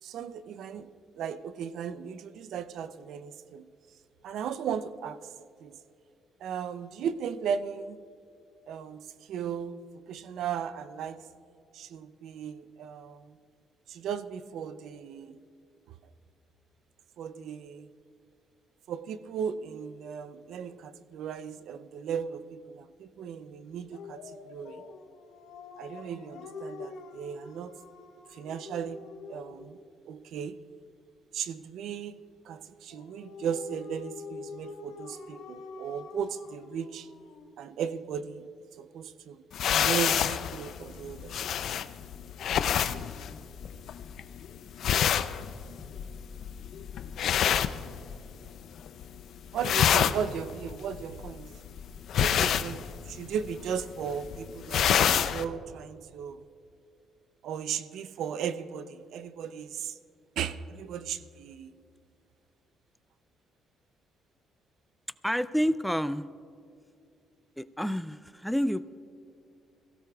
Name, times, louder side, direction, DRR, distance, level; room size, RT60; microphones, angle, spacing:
voice 1, 0.0-3.7 4.2-5.3 5.6-5.8 6.4-8.0 8.7-11.3 11.7-13.4 13.9-15.4 15.9-16.0 17.2-17.9 18.9-24.8 25.8-27.8 28.3-29.8 30.1-30.6 31.3-37.1 37.6-38.5 38.8-39.4 39.7-41.3 49.5-51.5 52.1-56.5 57.4-60.0 60.4-61.7, right 7 dB, 75° right, 0.5 m, -36 dB
Dog, 23.9-29.7 32.9-37.5, left 4 dB, 90° left, 1.1 m, -45 dB
sound 1, 39.5-48.5 48.8-49.2 49.5-55.4, left 9 dB, 65° left, 0.5 m, -28 dB
voice 2, 65.2-66.3 67.6-68.8, equal, ahead, 0.4 m, -29 dB
22.5 x 16.0 x 2.3 m
cardioid pair, 90°, 0 cm